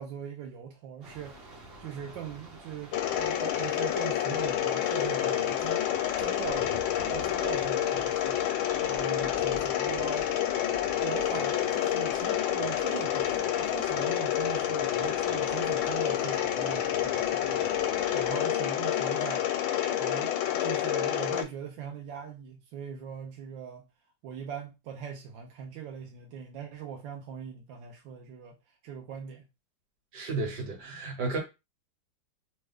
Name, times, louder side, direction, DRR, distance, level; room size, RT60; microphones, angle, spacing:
voice 1, 0.0-5.8 6.2-8.5 8.8-10.3 11.0-17.7 18.1-23.9 24.2-28.5 28.8-29.5, right 8 dB, 85° right, 1.4 m, -41 dB
sound 1, 1.0-18.4, right 1 dB, 45° right, 0.8 m, -48 dB
Mechanisms, 2.9-21.4, left 11 dB, 85° left, 1.3 m, -28 dB
voice 2, 30.1-31.4, right 3 dB, 65° right, 1.7 m, -33 dB
3.5 x 2.2 x 3.4 m
omnidirectional pair, 2.0 m